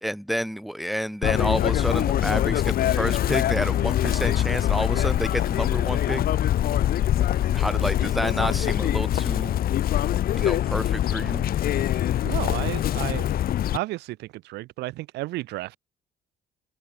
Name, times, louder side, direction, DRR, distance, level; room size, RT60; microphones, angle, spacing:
voice 1, 0.0-6.2 7.5-9.5 10.4-11.5, equal, ahead, 1.8 m, -29 dB
Chirp tweet, 1.2-13.8, left 12 dB, 60° left, 2.5 m, -23 dB
sound 1, 1.6-9.0, left 7 dB, 45° left, 6.5 m, -49 dB
voice 2, 12.2-13.3 13.7-15.8, right 19 dB, 85° right, 3.5 m, -32 dB
cardioid pair, 110°, 17 cm